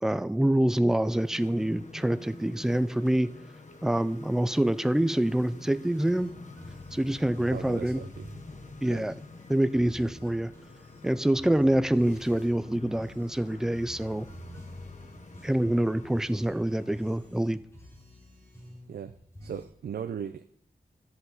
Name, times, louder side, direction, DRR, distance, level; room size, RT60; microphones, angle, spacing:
voice 1, 0.0-3.4 3.8-6.4 6.9-8.0 8.8-9.1 9.5-10.5 11.0-14.3 15.4-17.6, right 1 dB, 5° right, 14 dB, 0.3 m, -26 dB
sound 1, 0.9-17.5, left 3 dB, 50° left, 1.1 m, -48 dB
sound 2, 5.9-19.7, left 1 dB, 15° left, 3.4 m, -49 dB
voice 2, 7.5-8.3 8.8-9.1 18.9-19.1 19.4-20.5, right 8 dB, 85° right, 10 dB, 0.4 m, -37 dB
12.5 x 7.8 x 3.9 m, 0.70 s
wide cardioid pair, 130°, 16 cm